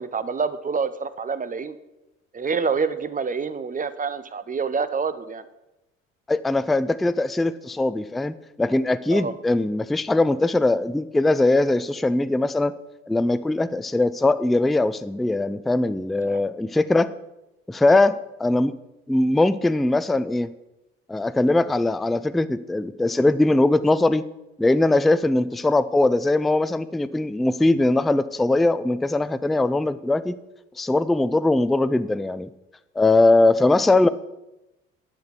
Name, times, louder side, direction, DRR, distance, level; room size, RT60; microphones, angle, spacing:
voice 1, 0.0-1.7 2.3-5.4 9.1-9.3 16.3-16.4 33.3-33.4, right 5 dB, 20° right, 14 dB, 0.9 m, -27 dB
voice 2, 6.3-12.7 13.1-17.1 17.7-18.7 19.1-20.5 21.1-24.3 24.6-30.4 30.8-32.5 33.0-34.1, left 2 dB, ahead, 14 dB, 0.4 m, -21 dB
10.5 x 6.1 x 7.1 m, 0.95 s
figure-of-eight pair, 55°, 38 cm